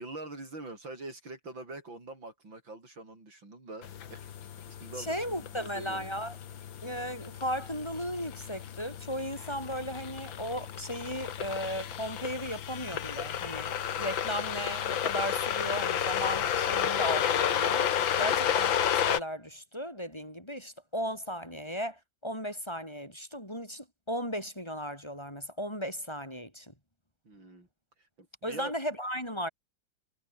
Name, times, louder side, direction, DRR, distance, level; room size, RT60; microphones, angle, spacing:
voice 1, 0.0-4.3 4.7-6.1 18.2-18.3 27.2-27.7 28.0-28.7, right 2 dB, 80° right, 7.9 m, -44 dB
sound 1, 3.8-19.2, left 9 dB, 80° left, 2.1 m, -32 dB
voice 2, 5.0-6.4 6.8-17.9 18.2-26.7 28.4-29.5, equal, 15° left, 6.6 m, -36 dB
omnidirectional pair, 2.1 m